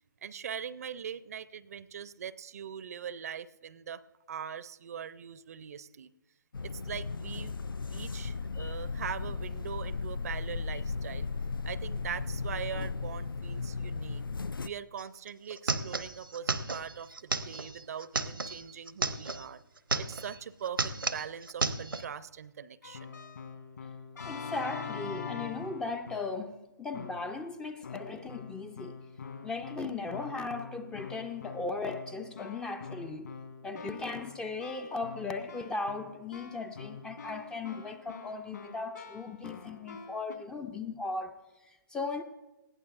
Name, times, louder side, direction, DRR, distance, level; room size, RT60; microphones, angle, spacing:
voice 1, 0.2-4.0 4.3-6.1 6.6-7.6 7.9-11.3 11.6-14.2 14.6-19.6 19.9-23.2, right 8 dB, 45° right, 0.5 m, -41 dB
sound 1, 6.5-14.7, left 4 dB, 80° left, 0.4 m, -36 dB
sound 2, 15.0-15.1 15.3-19.4 19.8-20.4 20.6-22.0, right 3 dB, 85° right, 0.9 m, -33 dB
Keyboard (musical), 22.8-26.5 26.9-27.4 27.8-40.4, left 6 dB, 65° left, 3.3 m, -44 dB
voice 2, 24.3-28.9 29.4-33.3 33.6-42.2, left 3 dB, 5° left, 0.4 m, -37 dB
20.0 x 15.5 x 2.4 m
figure-of-eight pair, 140°, 11 cm